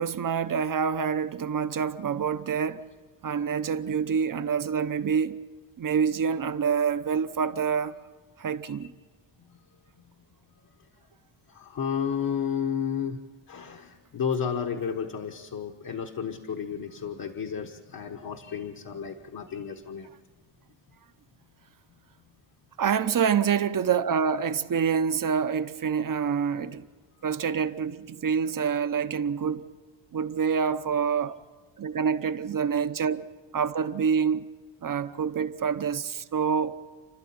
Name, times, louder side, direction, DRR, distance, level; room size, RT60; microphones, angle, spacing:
voice 1, 0.0-2.8 3.2-5.4 5.8-7.9 8.4-8.9 22.8-26.8 27.2-29.7 30.1-31.4 31.8-34.5 34.8-36.8, right 7 dB, 45° right, 0.9 m, -27 dB
voice 2, 11.5-13.2 13.5-20.1, left 7 dB, 45° left, 1.3 m, -32 dB
29.5 x 12.5 x 8.7 m
wide cardioid pair, 145°, 47 cm